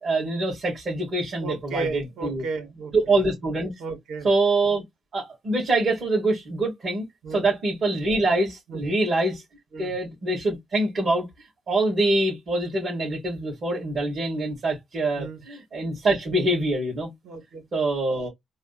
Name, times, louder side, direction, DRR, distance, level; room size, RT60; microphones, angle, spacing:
voice 1, 0.0-2.4 2.9-3.7 4.2-4.8 5.1-7.0 7.3-9.4 9.8-11.3 11.7-17.1 17.7-18.3, right 2 dB, 50° right, 2.5 m, -24 dB
voice 2, 1.4-3.2 3.8-4.3 7.2-7.4 8.7-8.9 9.7-10.0 15.2-15.4 17.2-17.7, right 4 dB, 65° right, 2.2 m, -34 dB
4.1 x 2.3 x 4.1 m
cardioid pair, 90°, 0 cm